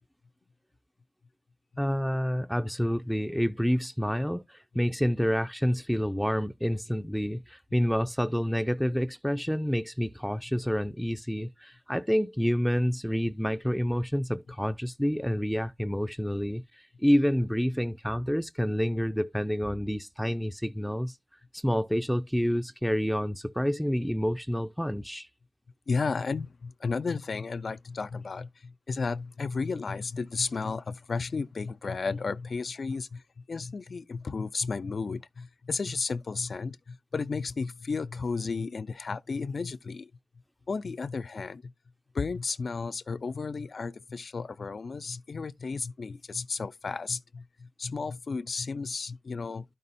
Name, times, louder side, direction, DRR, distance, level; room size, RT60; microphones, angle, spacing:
voice 1, 1.8-16.6 17.0-21.2 21.5-25.3, equal, ahead, 0.4 m, -28 dB
voice 2, 25.9-33.2 33.5-40.1 40.7-41.7 42.1-49.6, left 4 dB, 70° left, 0.4 m, -33 dB
12.0 x 5.4 x 2.6 m
cardioid pair, 50°, 0 cm